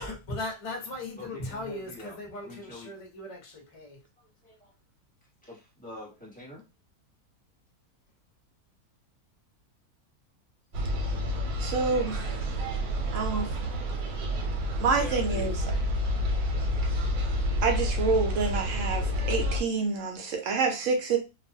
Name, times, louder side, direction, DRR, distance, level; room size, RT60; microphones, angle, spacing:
voice 1, 0.0-4.0, left 2 dB, 35° left, 0.6 m, -38 dB
voice 2, 1.2-2.2 2.4-2.9 4.4-4.7 5.4-6.6 12.9-13.1 13.4-13.7 15.0-15.5, left 1 dB, 5° left, 0.9 m, -45 dB
sound 1, 10.7-19.6, left 1 dB, 85° right, 1.2 m, -29 dB
voice 3, 11.6-12.5 13.1-13.6 14.8-15.6 17.6-21.2, right 4 dB, 65° right, 0.9 m, -28 dB
2.4 x 2.2 x 2.6 m
omnidirectional pair, 1.6 m